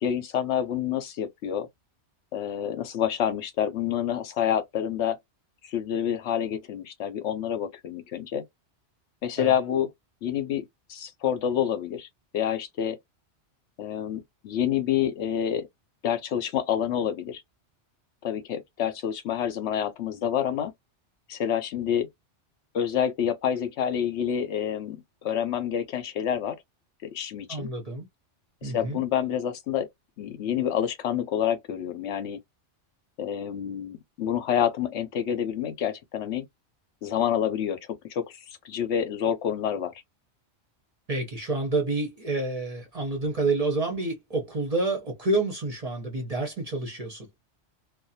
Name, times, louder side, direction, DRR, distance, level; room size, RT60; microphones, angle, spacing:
voice 1, 0.0-1.7 2.3-5.2 5.6-8.4 9.2-9.9 10.2-12.1 12.3-13.0 13.8-15.7 16.0-17.4 18.2-20.7 21.3-22.1 22.7-26.6 27.0-27.7 28.6-29.9 30.2-32.4 33.2-36.5 37.0-39.9, left 9 dB, 75° left, 0.9 m, -28 dB
voice 2, 27.5-28.1 28.6-29.0 41.1-47.3, right 2 dB, 35° right, 0.7 m, -28 dB
2.4 x 2.2 x 2.7 m
omnidirectional pair, 1.2 m